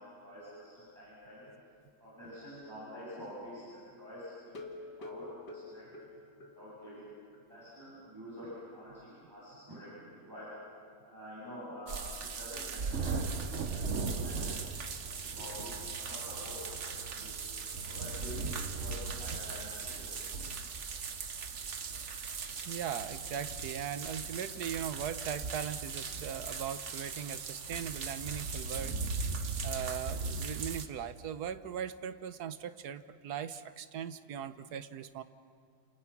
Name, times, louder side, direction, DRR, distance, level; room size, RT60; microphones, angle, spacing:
voice 1, 0.0-1.4 2.0-3.6 4.0-5.8 6.4-7.0 7.5-10.5 11.0-13.4 13.6-14.5 15.0-17.4 17.8-20.1, equal, 10° right, -10 dB, 8.1 m, -47 dB
sound 1, 4.5-7.0 7.3-7.4 7.8-7.9 8.3-8.4, left 2 dB, 80° left, 2.8 m, -47 dB
sound 2, 11.9-30.9, right 4 dB, 45° right, 1.4 m, -38 dB
voice 2, 22.6-29.0 29.6-35.2, right 9 dB, 70° right, 12 dB, 1.4 m, -39 dB
29.5 x 28.0 x 6.0 m, 2.2 s
omnidirectional pair, 1.8 m